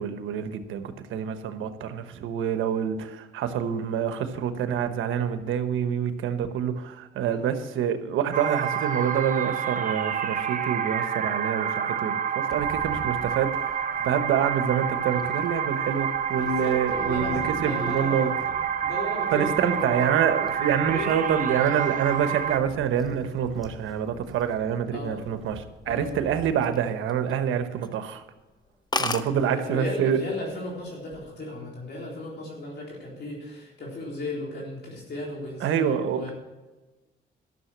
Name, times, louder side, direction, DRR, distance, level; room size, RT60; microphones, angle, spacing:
voice 1, 0.0-18.3 19.3-28.2 29.0-30.2 35.6-36.3, right 8 dB, 85° right, 9 dB, 1.1 m, -27 dB
sound 1, 8.3-22.6, right 8 dB, 40° right, 0.9 m, -28 dB
sound 2, 12.5-26.5, right 1 dB, ahead, 1.8 m, -47 dB
voice 2, 16.3-18.4 18.8-20.1 20.9-21.1 24.9-25.2 25.9-26.1 29.3-36.3, left 1 dB, 55° left, -3 dB, 3.8 m, -35 dB
sound 3, 26.4-27.4 27.8-28.0 28.4-28.5 28.7-28.8 28.9-29.3 30.2-30.5 30.9-31.3, left 3 dB, 20° left, 0.8 m, -30 dB
12.5 x 6.7 x 7.2 m, 1.2 s
cardioid pair, 90°, 20 cm